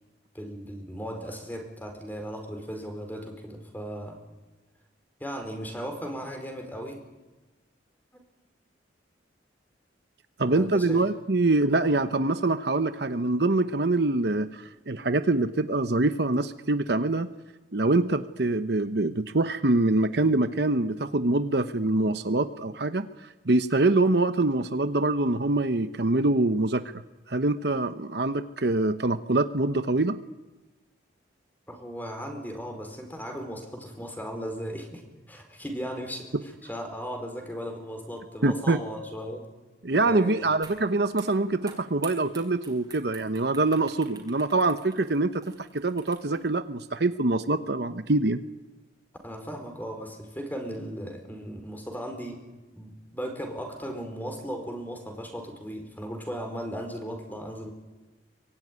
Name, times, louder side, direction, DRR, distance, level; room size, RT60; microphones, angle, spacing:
voice 1, 0.3-4.2 5.2-7.0 10.4-11.0 31.7-39.5 40.0-40.4 49.2-52.4 52.8-57.7, equal, 10° left, 5 dB, 4.5 m, -37 dB
voice 2, 10.4-17.3 17.7-23.1 23.5-26.8 27.3-30.2 38.4-38.8 39.8-48.4, right 2 dB, 60° right, 10 dB, 0.9 m, -24 dB
sound 1, 40.6-40.8 41.1-46.5, right 5 dB, 20° right, 4.7 m, -48 dB
24.0 x 23.0 x 9.7 m, 1.2 s
head